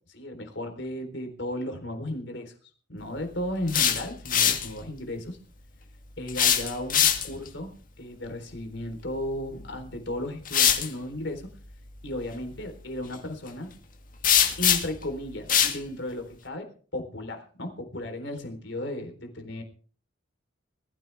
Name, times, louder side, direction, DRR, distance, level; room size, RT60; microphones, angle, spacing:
voice 1, 0.1-2.5 2.9-5.4 6.2-11.5 12.0-13.7 14.6-19.6, left 1 dB, 65° left, 6 dB, 3.9 m, -35 dB
sound 1, 3.5-4.7 6.3-7.5 9.5-9.7 10.4-10.9 14.2-15.0 15.5-15.8, left 9 dB, 45° left, 2.2 m, -22 dB
20.5 x 15.5 x 3.5 m, 0.42 s
head